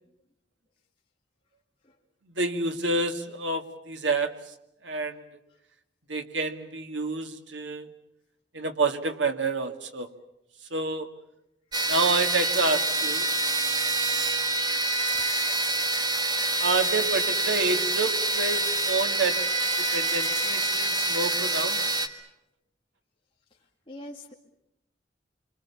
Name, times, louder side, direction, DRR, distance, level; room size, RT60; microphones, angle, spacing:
voice 1, 2.3-4.3 4.8-5.2 6.1-7.9 8.5-10.1 10.7-11.1 11.9-13.3 16.6-19.5 19.8-21.9, right 3 dB, 85° right, 6 dB, 2.3 m, -28 dB
sound 1, 11.7-22.1, right 2 dB, 25° right, 1.7 m, -26 dB
voice 2, 23.9-24.3, left 1 dB, 30° left, -3 dB, 2.2 m, -43 dB
27.0 x 25.5 x 7.1 m, 0.85 s
head